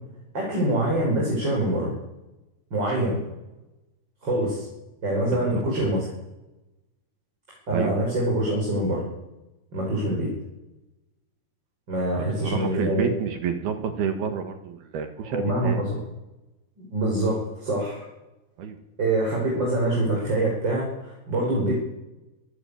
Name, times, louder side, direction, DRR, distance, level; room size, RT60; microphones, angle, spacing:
voice 1, 0.3-1.9 2.7-3.2 4.2-4.6 5.0-6.1 7.7-9.0 9.7-10.3 11.9-13.1 15.2-15.9 16.9-18.0 19.0-21.8, right 1 dB, 20° right, -3 dB, 5.9 m, -25 dB
voice 2, 5.3-5.9 7.7-8.0 12.1-15.8 18.6-18.8, right 7 dB, 60° right, 7 dB, 3.3 m, -30 dB
25.5 x 13.5 x 8.7 m, 1.0 s
omnidirectional pair, 5.6 m